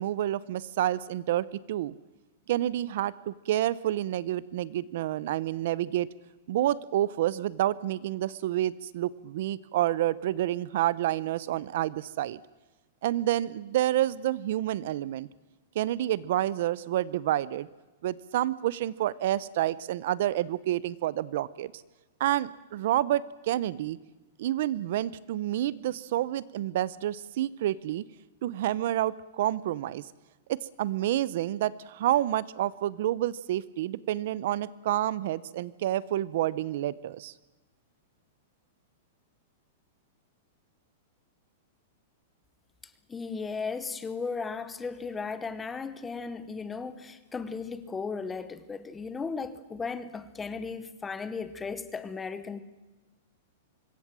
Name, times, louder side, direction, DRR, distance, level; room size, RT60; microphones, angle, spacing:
voice 1, 0.0-1.9 2.5-6.1 6.5-12.4 13.0-15.3 15.7-17.7 18.0-21.7 22.2-24.0 24.4-28.0 28.4-30.0 30.5-37.3, right 13 dB, 50° right, 0.7 m, -29 dB
voice 2, 43.1-52.6, left 5 dB, 10° left, 1.0 m, -36 dB
25.5 x 22.0 x 7.5 m
supercardioid pair, 175°, 0 cm